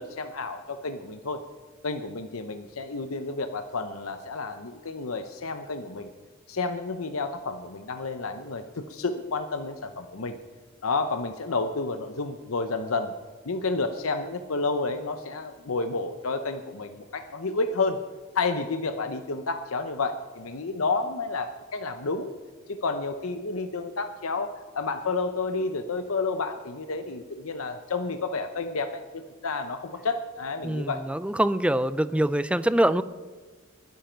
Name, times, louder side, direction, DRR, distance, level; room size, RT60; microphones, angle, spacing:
voice 1, 0.0-1.4 1.8-6.1 6.5-10.4 10.8-13.1 13.4-18.0 18.3-22.3 22.8-31.0, left 3 dB, 75° left, 8 dB, 0.8 m, -30 dB
voice 2, 30.6-33.0, right 1 dB, 5° right, 15 dB, 0.4 m, -24 dB
21.5 x 10.0 x 4.6 m, 1.4 s
head